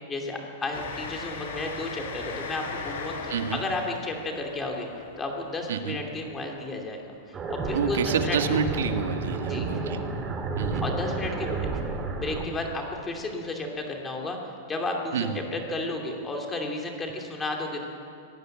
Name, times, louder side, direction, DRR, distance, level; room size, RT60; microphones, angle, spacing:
voice 1, 0.1-4.9 5.2-7.0 7.5-8.4 9.5-9.7 10.8-11.7 12.2-14.4 14.7-17.8, left 2 dB, 10° left, 1 dB, 2.7 m, -32 dB
Train, 0.7-6.9, left 4 dB, 85° left, 5.0 m, -39 dB
voice 2, 3.3-3.6 5.7-6.0 7.7-10.0 10.6-10.8 15.1-15.4, right 7 dB, 85° right, 6 dB, 1.9 m, -28 dB
sound 1, 7.3-12.5, right 3 dB, 15° right, 2.1 m, -31 dB
23.5 x 18.5 x 7.9 m, 2.5 s
supercardioid pair, 170°, 0 cm